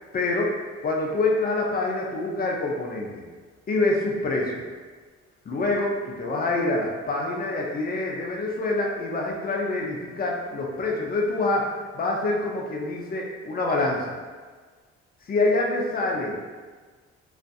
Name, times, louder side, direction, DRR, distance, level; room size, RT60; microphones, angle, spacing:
voice 1, 0.1-0.6 0.8-3.2 3.7-4.7 5.5-14.2 15.3-16.4, left 2 dB, 30° left, -1 dB, 0.5 m, -26 dB
2.5 x 2.4 x 2.3 m, 1.4 s
cardioid pair, 90°, 30 cm